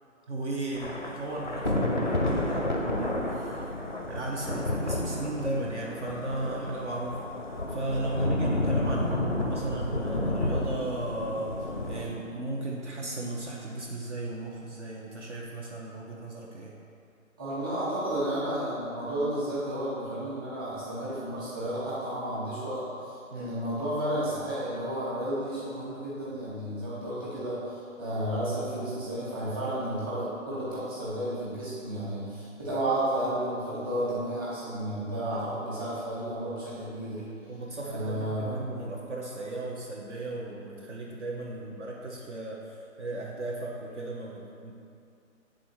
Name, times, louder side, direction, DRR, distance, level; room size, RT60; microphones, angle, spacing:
voice 1, 0.3-3.7 4.1-7.2 7.6-16.7 23.3-23.5 32.3-32.4 37.5-44.7, right 2 dB, 55° right, -3 dB, 0.9 m, -35 dB
Thunder / Rain, 0.7-12.1, left 1 dB, 35° left, 0.5 m, -30 dB
voice 2, 17.4-37.2 37.8-38.6, right 1 dB, 15° right, -11 dB, 1.3 m, -32 dB
8.0 x 3.7 x 4.4 m, 2.5 s
hypercardioid pair, 165°, 42 cm